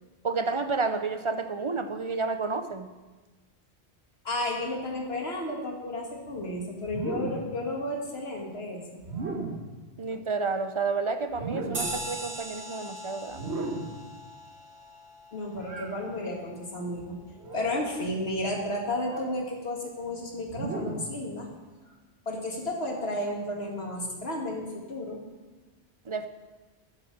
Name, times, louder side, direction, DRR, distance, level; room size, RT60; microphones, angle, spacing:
voice 1, 0.2-2.9 10.0-13.6 26.1-26.3, right 4 dB, 35° right, 9 dB, 0.6 m, -30 dB
voice 2, 4.2-9.0 15.3-17.2 17.5-21.5 22.3-25.2, left 1 dB, 65° left, 0 dB, 2.3 m, -32 dB
sound 1, 6.8-7.6 9.0-9.7 11.3-12.0 13.3-14.0 15.6-16.0 17.4-17.9 19.0-19.4 20.5-21.2, right 3 dB, 70° right, 1.7 m, -35 dB
sound 2, 11.7-16.6, right 1 dB, 50° right, 2.0 m, -40 dB
11.5 x 7.7 x 6.7 m, 1.2 s
omnidirectional pair, 1.1 m